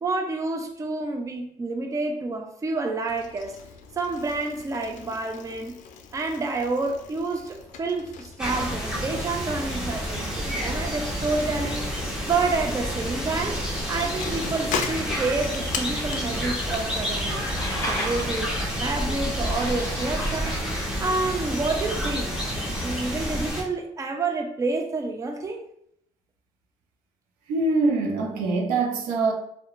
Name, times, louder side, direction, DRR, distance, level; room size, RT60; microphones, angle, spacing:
voice 1, 0.0-3.6 4.0-5.8 6.1-11.9 12.3-17.5 17.8-20.6 21.0-22.4 22.8-25.7, right 3 dB, 20° right, 0.4 m, -29 dB
Bicycle, 3.1-18.6, left 5 dB, 60° left, 0.4 m, -40 dB
sound 1, 8.4-23.6, equal, 5° right, 0.9 m, -29 dB
sound 2, 11.5-20.6, left 1 dB, 20° left, 1.1 m, -37 dB
voice 2, 27.5-29.3, right 3 dB, 75° right, 0.5 m, -23 dB
2.8 x 2.1 x 2.4 m
supercardioid pair, 65°, 14 cm